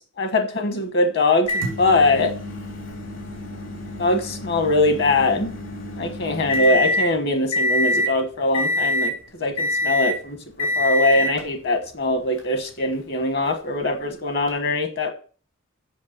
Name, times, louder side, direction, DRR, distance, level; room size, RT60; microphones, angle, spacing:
voice 1, 0.2-2.3 4.0-5.5 6.0-9.1 9.4-15.1, left 2 dB, 50° left, 5 dB, 1.2 m, -22 dB
Microwave oven, 1.5-7.1 7.5-8.1 8.5-9.2 9.6-10.2 10.6-11.4 12.4-12.5 14.5-14.6, left 1 dB, 75° left, 3.6 m, -26 dB
8.5 x 6.4 x 6.5 m, 0.39 s
head